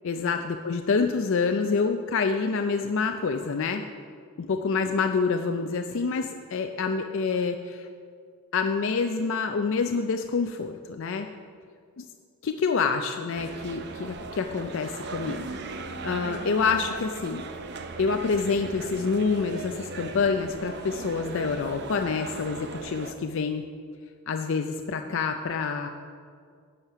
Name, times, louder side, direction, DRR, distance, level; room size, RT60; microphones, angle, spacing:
voice 1, 0.0-3.8 4.4-7.9 8.5-11.3 12.0-12.1 12.4-15.5 16.0-17.4 18.0-23.6 24.3-25.9, left 4 dB, 60° left, 5 dB, 0.4 m, -27 dB
sound 1, 13.3-23.1, right 3 dB, 50° right, 0.7 m, -38 dB
10.5 x 7.2 x 5.5 m, 2.1 s
head